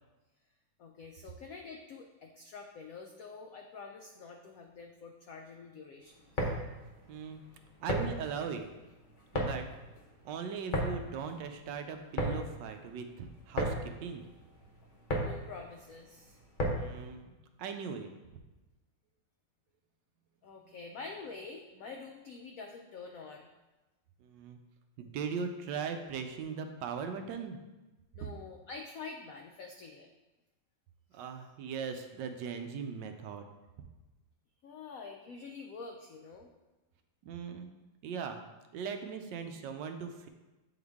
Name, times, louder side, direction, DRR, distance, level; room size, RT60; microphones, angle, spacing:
voice 1, 0.8-6.5 15.2-16.4 20.4-23.5 28.1-30.1 31.1-31.2 34.6-36.5, left 4 dB, 90° left, 3 dB, 0.7 m, -47 dB
sound 1, 6.1-17.0, equal, 50° left, 0.6 m, -36 dB
voice 2, 7.1-7.4 7.8-8.7 9.3-9.6 10.2-13.7 14.0-14.2 16.8-17.3 17.6-18.1 24.2-24.6 25.0-27.6 31.1-33.5 37.3-37.7 38.0-38.4 38.7-40.3, right 6 dB, 75° right, 6 dB, 1.2 m, -39 dB
7.7 x 3.8 x 3.5 m, 1.1 s
omnidirectional pair, 2.0 m